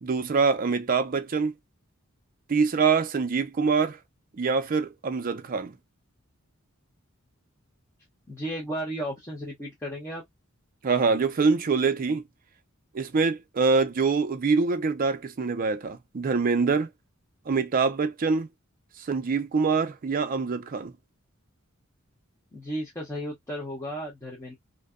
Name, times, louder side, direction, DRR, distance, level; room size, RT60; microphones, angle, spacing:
voice 1, 0.0-1.5 2.5-4.0 4.4-5.7 10.8-12.2 12.9-16.9 17.5-18.5 19.1-20.9, right 4 dB, 40° right, 0.4 m, -24 dB
voice 2, 8.3-10.2 22.5-24.5, equal, 15° left, 0.7 m, -34 dB
2.6 x 2.2 x 2.3 m
head